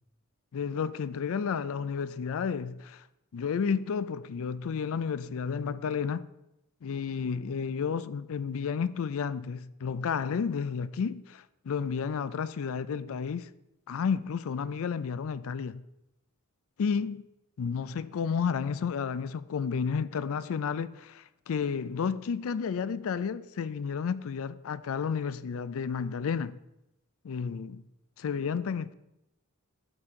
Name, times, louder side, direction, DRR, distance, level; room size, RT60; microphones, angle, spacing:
voice 1, 0.5-3.0 3.3-6.3 6.8-13.5 13.9-15.8 16.8-17.2 17.6-26.6 27.2-27.8 28.2-28.9, left 6 dB, 65° left, 0.4 m, -31 dB
12.5 x 4.1 x 3.7 m
head